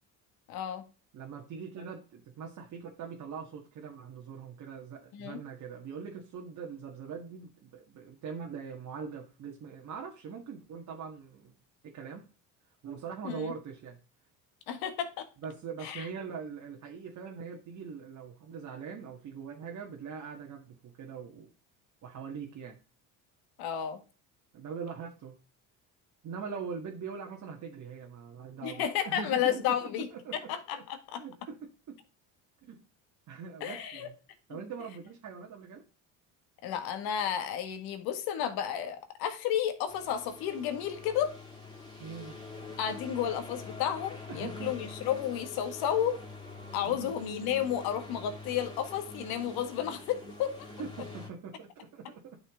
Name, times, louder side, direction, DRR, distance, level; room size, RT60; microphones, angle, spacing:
voice 1, 0.5-0.8 5.1-5.4 13.2-13.5 14.7-15.3 15.8-16.1 23.6-24.0 28.6-30.1 30.3-31.2 33.6-34.1 34.5-34.6 36.6-41.3 42.8-46.2 46.7-50.6, left 9 dB, 75° left, 8 dB, 1.8 m, -32 dB
voice 2, 1.1-11.5 11.8-12.2 12.8-14.0 15.4-21.5 22.0-22.8 24.5-25.4 26.2-30.5 31.2-32.0 32.6-32.8 33.3-34.2 34.5-35.8 42.0-42.4 44.3-44.8 46.8-47.1 50.8-52.4, right 6 dB, 50° right, 0 dB, 1.8 m, -42 dB
sound 1, 39.9-51.3, left 3 dB, 10° left, 3.0 m, -45 dB
11.0 x 6.3 x 3.7 m, 0.34 s
cardioid pair, 105°, 37 cm